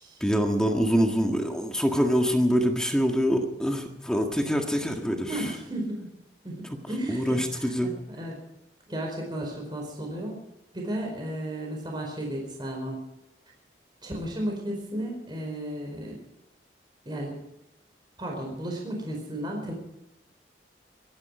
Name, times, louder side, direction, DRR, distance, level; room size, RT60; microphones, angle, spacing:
voice 1, 0.2-5.4 7.1-7.9, equal, 5° left, 3 dB, 1.7 m, -25 dB
voice 2, 5.3-6.1 6.4-8.4 8.9-10.4 10.7-13.0 14.0-16.2 17.0-17.4 18.2-19.7, right 1 dB, 25° right, 0 dB, 4.6 m, -34 dB
25.0 x 11.0 x 4.9 m, 0.88 s
head